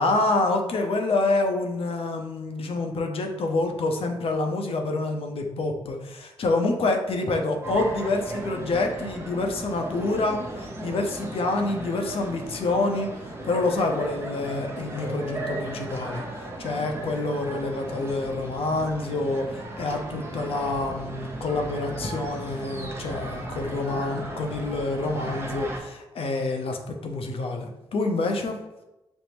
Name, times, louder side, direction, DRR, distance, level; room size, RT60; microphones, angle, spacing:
voice 1, 0.0-13.1 13.4-16.2 16.6-28.6, left 2 dB, 65° left, 4 dB, 0.6 m, -27 dB
sound 1, 7.6-25.8, right 1 dB, 25° right, 0.8 m, -36 dB
5.2 x 2.0 x 3.0 m, 0.97 s
supercardioid pair, 60°, 11 cm